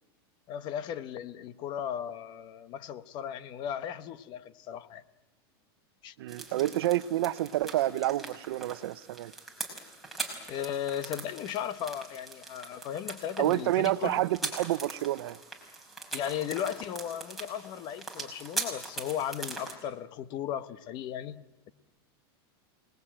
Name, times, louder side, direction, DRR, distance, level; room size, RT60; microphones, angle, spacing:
voice 1, 0.5-5.0 6.0-6.1 10.5-14.2 16.1-21.7, left 9 dB, 35° left, 1.0 m, -36 dB
voice 2, 6.2-9.3 13.4-15.4, right 14 dB, 75° right, 0.9 m, -29 dB
sound 1, 6.3-19.7, right 3 dB, ahead, 5.2 m, -41 dB
28.5 x 20.0 x 9.0 m
supercardioid pair, 155°, 13 cm